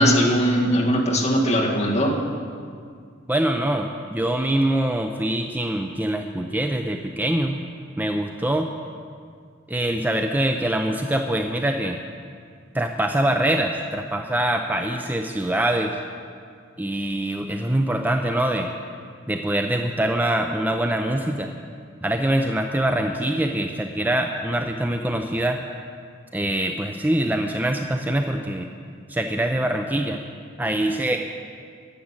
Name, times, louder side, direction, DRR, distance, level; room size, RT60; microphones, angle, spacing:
voice 1, 0.0-2.2, equal, 35° left, -2 dB, 1.9 m, -19 dB
voice 2, 3.3-7.5 8.0-8.7 9.7-12.0 12.7-16.0 16.8-18.7 19.3-21.5 22.0-25.6 26.3-28.7 29.1-30.2 30.6-31.2, right 1 dB, 10° right, 4 dB, 0.5 m, -24 dB
10.5 x 7.4 x 9.6 m, 2.2 s
head